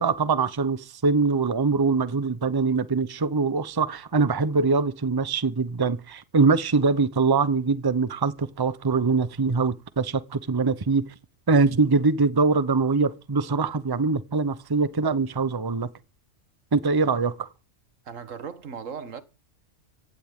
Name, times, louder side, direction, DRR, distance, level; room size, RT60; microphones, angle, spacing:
voice 1, 0.0-11.0 11.5-15.9 16.7-17.5, right 4 dB, 20° right, 0.8 m, -23 dB
voice 2, 18.1-19.2, right 6 dB, 85° right, 1.7 m, -37 dB
16.0 x 16.0 x 3.7 m
omnidirectional pair, 1.3 m